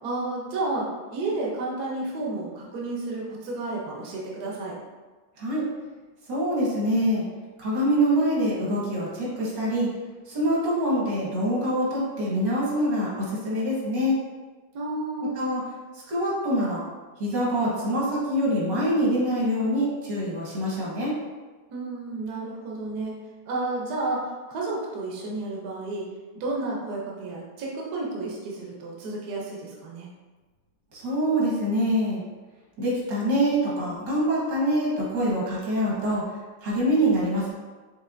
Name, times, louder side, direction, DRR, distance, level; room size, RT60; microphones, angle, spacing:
voice 1, 0.0-4.8 14.7-15.4 21.7-23.2 23.5-26.1 26.3-30.1, right 2 dB, 65° right, -3 dB, 1.3 m, -31 dB
voice 2, 6.3-7.2 7.6-9.9 10.3-14.2 15.4-15.6 15.9-16.8 17.2-21.1 30.9-32.2 32.8-36.2 36.6-37.5, equal, 90° right, -6 dB, 2.1 m, -25 dB
5.3 x 3.8 x 2.5 m, 1.3 s
omnidirectional pair, 1.9 m